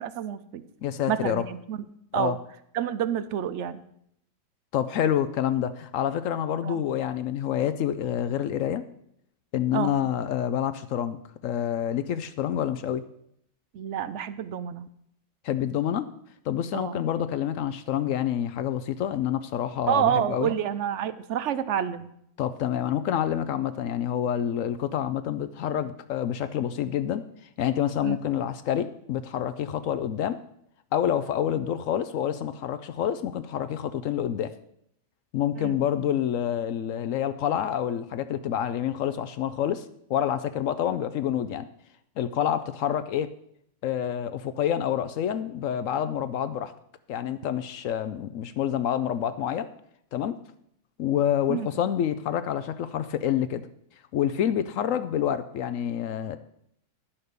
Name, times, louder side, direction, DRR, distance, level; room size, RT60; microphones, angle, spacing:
voice 1, 0.0-0.6 1.1-1.8 2.1-2.4 2.7-3.8 6.6-6.8 9.7-9.9 13.7-14.9 16.7-17.0 19.9-22.1 28.0-28.2 35.5-35.8 51.5-51.7, right 10 dB, 65° right, 14 dB, 0.8 m, -28 dB
voice 2, 0.8-1.4 2.1-2.3 4.7-8.8 9.5-13.0 15.4-16.1 16.5-20.5 22.4-27.2 27.6-30.4 30.9-34.5 35.3-41.7 42.2-43.3 43.8-46.7 47.1-49.7 50.1-50.4 51.0-53.6 54.1-56.4, left 10 dB, 70° left, 11 dB, 0.8 m, -27 dB
11.0 x 5.8 x 6.6 m, 0.72 s
omnidirectional pair, 1.6 m